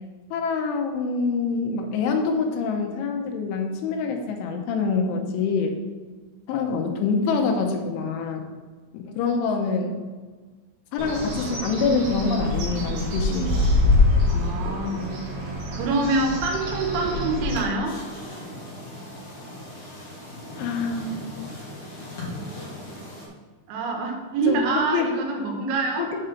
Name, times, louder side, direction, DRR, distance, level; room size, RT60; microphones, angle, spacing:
voice 1, 0.3-5.8 6.5-8.5 8.9-9.9 10.9-13.7 20.6-21.1 24.5-25.1 26.0-26.2, left 4 dB, 85° left, 3 dB, 3.4 m, -25 dB
Bird, 11.0-17.6, left 2 dB, 60° right, 3.6 m, -25 dB
voice 2, 14.3-15.1 15.7-18.0 23.7-26.1, right 3 dB, 80° right, 3 dB, 3.5 m, -26 dB
sound 1, 17.8-23.3, left 1 dB, 40° left, 3.0 m, -38 dB
7.9 x 5.1 x 5.9 m, 1.4 s
omnidirectional pair, 5.4 m